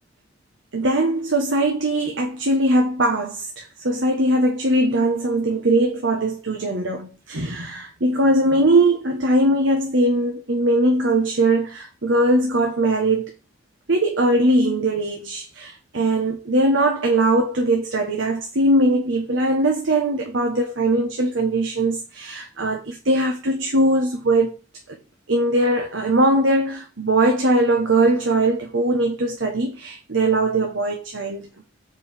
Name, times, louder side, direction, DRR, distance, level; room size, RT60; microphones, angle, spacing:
voice 1, 0.7-13.3 13.9-24.6 25.3-31.5, right 1 dB, 75° right, 1.2 m, -20 dB
7.0 x 5.2 x 4.4 m
head